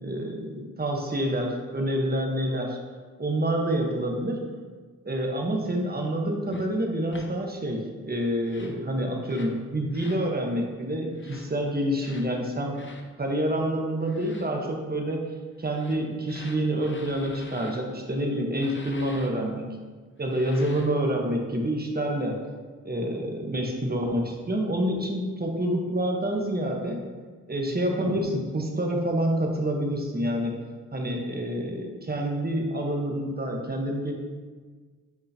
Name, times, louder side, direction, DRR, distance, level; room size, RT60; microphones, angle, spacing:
voice 1, 0.0-2.8 3.2-4.4 5.0-12.8 13.2-15.2 15.6-19.8 20.2-22.4 22.8-27.0 27.5-30.6 30.9-34.1, right 1 dB, 30° right, 1 dB, 1.1 m, -27 dB
sound 1, 6.5-6.7 7.1-7.3 8.4-8.8 9.2-9.6 9.9-10.2 11.1-11.5 12.0-12.3 12.7-13.0 14.0-14.5 15.6-17.8 18.5-19.3 20.2-21.0, left 3 dB, 35° left, 0.8 m, -47 dB
8.3 x 4.8 x 2.8 m, 1.5 s
cardioid pair, 65°, 32 cm